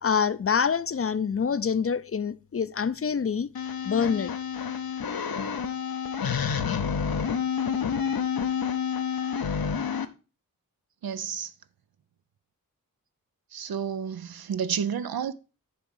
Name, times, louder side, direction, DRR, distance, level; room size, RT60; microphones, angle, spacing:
voice 1, 0.0-3.5 3.8-4.3, left 6 dB, 40° left, 0.4 m, -26 dB
sound 1, 3.5-10.0, left 7 dB, 80° left, 0.7 m, -29 dB
voice 2, 11.0-11.5 13.5-15.3, right 7 dB, 85° right, 0.6 m, -30 dB
6.9 x 3.7 x 6.2 m
wide cardioid pair, 65°, 35 cm